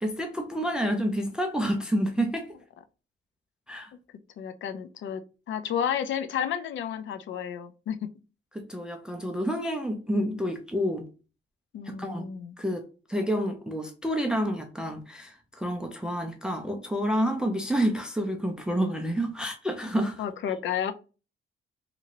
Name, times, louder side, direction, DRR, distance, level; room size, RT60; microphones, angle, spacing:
voice 1, 0.0-2.5 3.7-3.9 8.5-11.1 11.9-12.2 12.6-12.8 13.1-20.2, equal, 5° right, 0.3 m, -29 dB
voice 2, 4.4-8.1 11.7-12.6 20.2-20.9, left 8 dB, 65° left, 0.4 m, -31 dB
2.9 x 2.5 x 2.8 m
cardioid pair, 155°, 21 cm